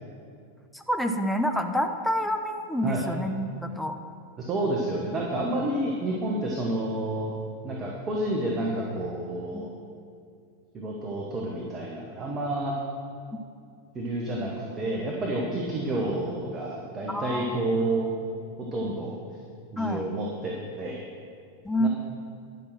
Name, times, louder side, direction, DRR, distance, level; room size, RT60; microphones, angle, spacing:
voice 1, 0.7-4.0 9.5-9.6 17.1-17.6 19.8-20.1 21.6-21.9, equal, ahead, 6 dB, 0.7 m, -28 dB
voice 2, 4.4-7.3 7.6-9.7 10.7-12.7 13.9-18.1 18.7-19.1 19.7-21.0 21.8-21.9, right 1 dB, 25° right, -2 dB, 1.3 m, -29 dB
10.5 x 5.7 x 6.3 m, 2.4 s
figure-of-eight pair, 90°, 0 cm